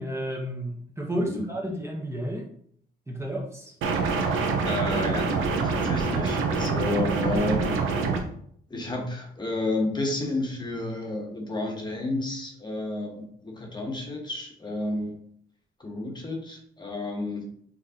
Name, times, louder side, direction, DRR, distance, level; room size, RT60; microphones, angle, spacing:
voice 1, 0.0-2.4 3.1-3.7, equal, 15° right, -1 dB, 1.0 m, -31 dB
sound 1, 3.8-8.2, right 4 dB, 85° right, 0.8 m, -25 dB
voice 2, 4.6-5.4 5.6-8.1 8.7-15.2 15.8-17.4, left 2 dB, 20° left, 0 dB, 1.1 m, -31 dB
5.9 x 3.2 x 2.8 m, 0.64 s
cardioid pair, 90°, 20 cm